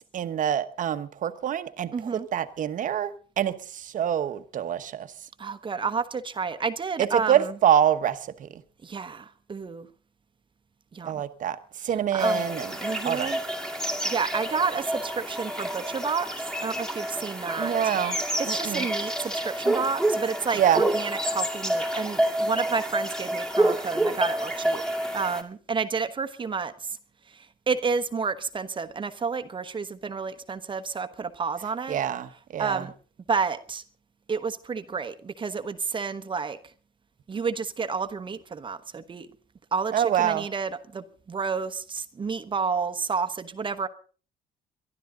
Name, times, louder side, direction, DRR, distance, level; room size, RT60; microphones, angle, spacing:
voice 1, 0.1-5.1 7.0-8.6 11.0-11.6 11.8-12.8 13.0-13.3 17.6-18.2 18.5-18.9 20.5-20.8 31.9-32.9 39.9-40.5, right 10 dB, 50° right, 1.1 m, -26 dB
voice 2, 1.9-2.3 5.4-7.5 8.8-9.9 10.9-11.2 12.1-12.4 12.8-13.4 13.8-17.9 18.5-24.8 25.1-27.0 27.3-32.0 32.6-32.9 33.3-33.8 34.3-36.6 37.3-39.3 39.7-39.9 40.2-43.9, right 5 dB, 30° right, 1.1 m, -30 dB
sound 1, 12.2-25.4, right 1 dB, 5° left, 2.2 m, -28 dB
23.0 x 12.0 x 3.8 m
cardioid pair, 110°, 17 cm